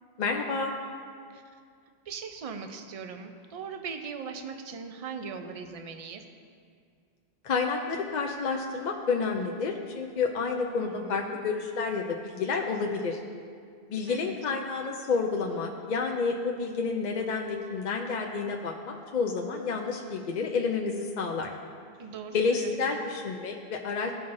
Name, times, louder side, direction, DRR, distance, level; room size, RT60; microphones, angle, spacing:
voice 1, 0.2-0.7 7.4-13.2 13.9-21.5 22.3-24.1, left 4 dB, 50° left, 1 dB, 0.6 m, -30 dB
voice 2, 2.1-6.2 10.8-11.4 14.1-14.3 22.0-23.1, right 5 dB, 45° right, 6 dB, 0.5 m, -40 dB
15.0 x 5.4 x 2.6 m, 2.2 s
omnidirectional pair, 1.1 m